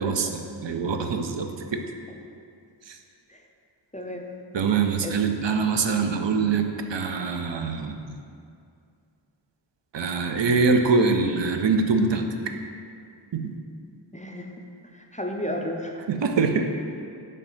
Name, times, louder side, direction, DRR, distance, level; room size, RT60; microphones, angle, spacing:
voice 1, 0.0-1.8 2.9-3.0 4.5-8.1 9.9-12.3 13.3-13.5 16.1-16.6, right 4 dB, 65° right, 5 dB, 0.6 m, -24 dB
voice 2, 3.9-4.3 5.0-5.1 14.1-14.5 14.9-16.0, left 1 dB, 15° left, 1 dB, 0.4 m, -32 dB
6.5 x 3.2 x 5.0 m, 2.4 s
wide cardioid pair, 55°, 47 cm